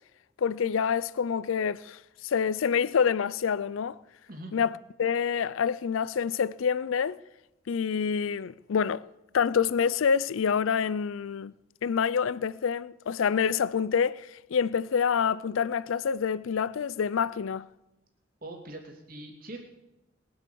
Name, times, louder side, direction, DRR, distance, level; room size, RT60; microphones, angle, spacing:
voice 1, 0.4-4.0 4.5-4.7 5.0-7.2 7.7-9.0 9.3-11.5 11.8-17.7, left 6 dB, 80° left, 0.4 m, -27 dB
voice 2, 18.4-19.6, right 1 dB, 45° right, 2.5 m, -42 dB
21.0 x 8.0 x 6.9 m
head